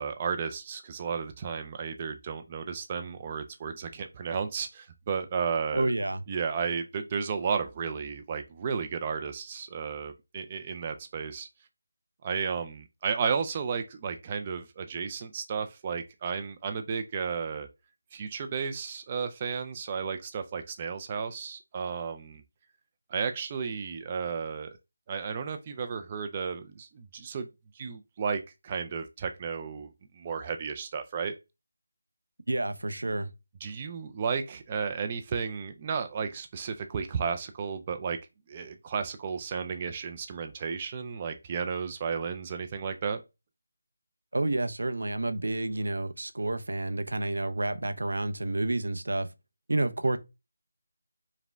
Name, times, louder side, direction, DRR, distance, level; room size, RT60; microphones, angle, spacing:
voice 1, 0.0-5.9 6.3-11.5 12.2-17.7 18.1-22.4 23.1-24.8 25.1-27.5 27.7-31.4 33.6-38.2 38.5-43.2, right 6 dB, 20° right, 0.3 m, -33 dB
voice 2, 5.7-6.2 32.5-33.3 44.3-49.3 49.7-50.2, right 2 dB, 80° right, 0.6 m, -29 dB
4.9 x 2.1 x 3.3 m
figure-of-eight pair, 170°, 0 cm